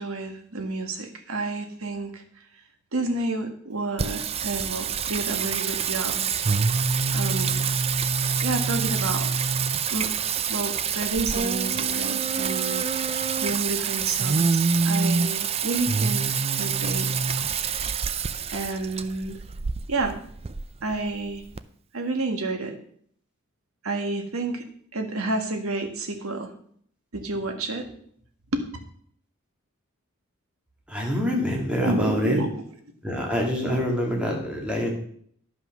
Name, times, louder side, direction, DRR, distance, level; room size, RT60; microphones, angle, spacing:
voice 1, 0.0-2.2 2.9-6.3 7.1-7.6 8.4-9.3 9.9-10.1 10.5-12.8 13.4-17.1 18.5-19.4 19.9-20.2 20.8-21.4 21.9-22.8 23.8-24.6 24.9-26.5 27.1-27.9 28.5-28.6 31.8-32.5 33.6-33.8, right 2 dB, 90° right, 6 dB, 1.6 m, -30 dB
Singing, 4.0-21.6, right 5 dB, 30° right, 0.4 m, -26 dB
voice 2, 30.9-32.4 33.0-34.9, equal, 5° right, -1 dB, 2.1 m, -26 dB
11.0 x 5.8 x 6.0 m, 0.62 s
head